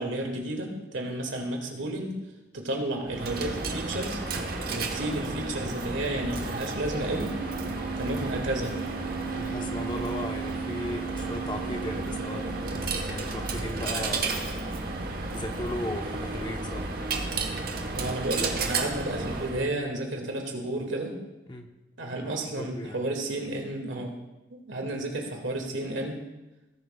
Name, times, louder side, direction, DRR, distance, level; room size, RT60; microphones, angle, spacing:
voice 1, 0.0-2.2 2.5-4.2 4.7-7.4 8.0-8.8 17.9-21.2 22.0-24.2 24.5-26.2, right 1 dB, 80° right, 2 dB, 2.1 m, -32 dB
Coin (dropping), 3.1-19.7, right 3 dB, 50° right, 1.1 m, -32 dB
voice 2, 9.3-12.8 13.1-14.5 15.3-16.9 21.5-21.7 22.6-23.0, left 1 dB, 25° left, 4 dB, 0.8 m, -36 dB
17.5 x 10.5 x 2.3 m, 1.0 s
head